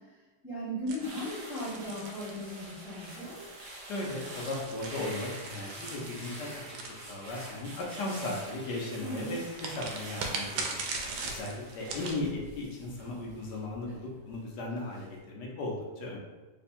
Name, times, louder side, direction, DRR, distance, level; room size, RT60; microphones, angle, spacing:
voice 1, 0.4-3.4 9.0-9.4, equal, ahead, -8 dB, 0.8 m, -37 dB
sound 1, 0.9-2.9 3.8-7.6 9.5-12.2, right 4 dB, 75° right, 1.1 m, -40 dB
sound 2, 1.0-14.4 14.7-15.0, right 1 dB, 50° right, 1.2 m, -45 dB
voice 2, 3.8-6.8 7.1-10.8 11.2-16.2, left 2 dB, 75° left, -2 dB, 1.3 m, -37 dB
3.3 x 2.2 x 4.2 m, 1.3 s
omnidirectional pair, 1.8 m